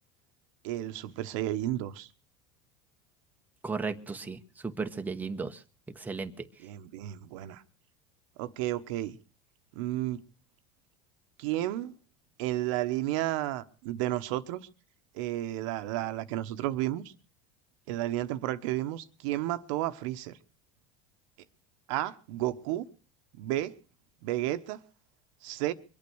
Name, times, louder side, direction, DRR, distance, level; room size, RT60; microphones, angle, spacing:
voice 1, 0.6-2.1 6.6-7.6 8.4-9.2 9.7-10.2 11.4-11.9 12.4-14.6 15.1-17.1 17.9-20.3 21.9-22.8 23.3-23.7 24.2-24.8 25.4-25.7, right 15 dB, 75° right, 10 dB, 1.1 m, -32 dB
voice 2, 3.6-5.6 6.0-6.3, right 4 dB, 10° right, 6 dB, 1.1 m, -35 dB
23.5 x 8.8 x 6.2 m, 0.38 s
supercardioid pair, 115°, 17 cm